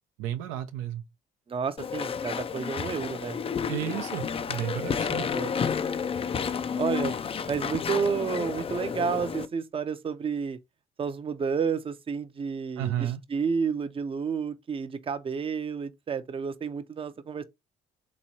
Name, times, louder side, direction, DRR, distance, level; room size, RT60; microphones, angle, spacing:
voice 1, 0.2-1.0 3.7-5.3 12.8-13.2, right 12 dB, 85° right, 0.5 m, -32 dB
voice 2, 1.5-3.4 5.1-5.5 6.7-7.2 7.5-10.6 11.0-17.4, right 6 dB, 25° right, 0.5 m, -31 dB
Walk footsteps / Chatter / Squeak, 1.8-9.5, left 6 dB, 30° left, 0.3 m, -31 dB
3.4 x 3.0 x 2.7 m
supercardioid pair, 70°, 21 cm